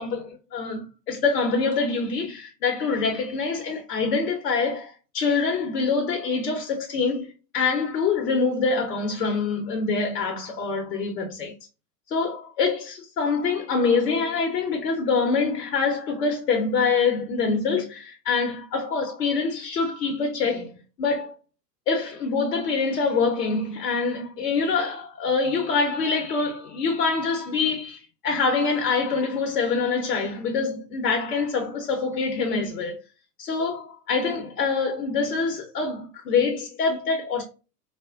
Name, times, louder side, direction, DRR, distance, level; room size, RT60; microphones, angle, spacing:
voice 1, 0.0-11.5 12.1-21.3 21.9-33.0 33.4-37.4, left 4 dB, 70° left, 0.9 m, -25 dB
4.2 x 2.1 x 2.4 m
figure-of-eight pair, 90°, 48 cm